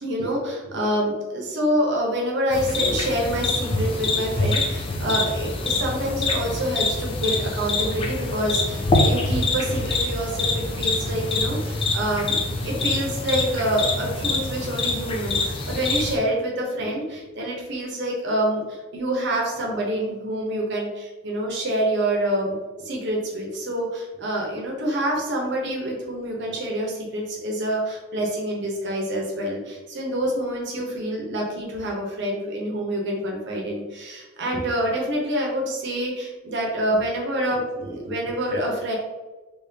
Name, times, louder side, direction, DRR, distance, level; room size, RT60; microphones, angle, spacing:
voice 1, 0.0-22.6 22.8-39.0, right 1 dB, 55° right, -1 dB, 0.9 m, -27 dB
sound 1, 2.5-16.2, left 2 dB, 25° left, 0.4 m, -25 dB
3.6 x 3.0 x 2.8 m, 1.2 s
head